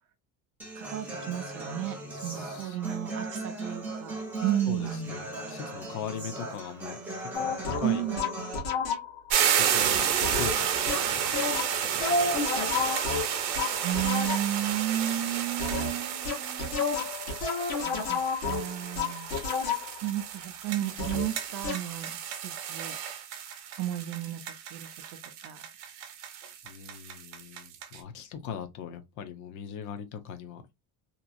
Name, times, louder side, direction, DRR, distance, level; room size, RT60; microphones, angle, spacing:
Human voice / Acoustic guitar, 0.6-8.6, right 2 dB, 5° right, 0.6 m, -38 dB
voice 1, 0.7-4.1 4.4-5.2 7.8-8.2 13.8-16.8 17.8-19.3 20.0-23.0 23.8-24.4 24.7-25.6, right 12 dB, 50° right, 0.4 m, -33 dB
voice 2, 2.1-2.8 4.7-8.1 9.5-13.3 26.6-30.7, left 7 dB, 45° left, 0.6 m, -41 dB
sound 1, 7.3-9.3 10.2-14.7 15.6-20.1 21.0-21.3 21.6-21.9, left 4 dB, 75° left, 1.3 m, -31 dB
sound 2, 9.3-28.0, right 9 dB, 75° right, 0.7 m, -31 dB
2.9 x 2.3 x 2.5 m
cardioid pair, 170°, 41 cm